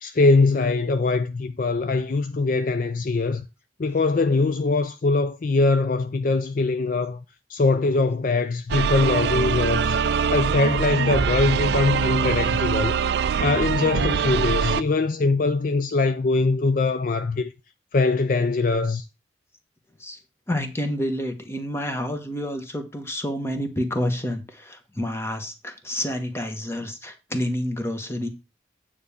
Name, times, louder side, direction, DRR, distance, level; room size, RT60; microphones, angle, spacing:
voice 1, 0.0-3.5 3.8-7.2 7.5-10.0 10.3-12.9 13.4-17.5 17.9-19.0, left 3 dB, 45° left, 0.4 m, -22 dB
sound 1, 8.7-14.8, right 6 dB, 55° right, 0.3 m, -23 dB
voice 2, 20.5-28.3, left 1 dB, 15° left, 1.2 m, -29 dB
9.3 x 3.5 x 7.0 m
head